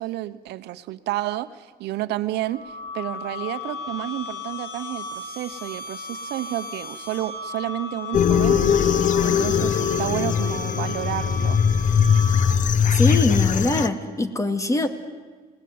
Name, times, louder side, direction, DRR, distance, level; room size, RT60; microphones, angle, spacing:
voice 1, 0.0-11.6, right 15 dB, 80° right, 12 dB, 1.0 m, -31 dB
sound 1, 2.4-12.8, left 3 dB, 70° left, 7.3 m, -35 dB
sound 2, 8.1-13.9, left 7 dB, 50° left, 1.2 m, -20 dB
voice 2, 12.9-14.9, left 2 dB, 20° left, 9 dB, 2.3 m, -23 dB
30.0 x 19.0 x 9.6 m, 1.5 s
cardioid pair, 110°, 17 cm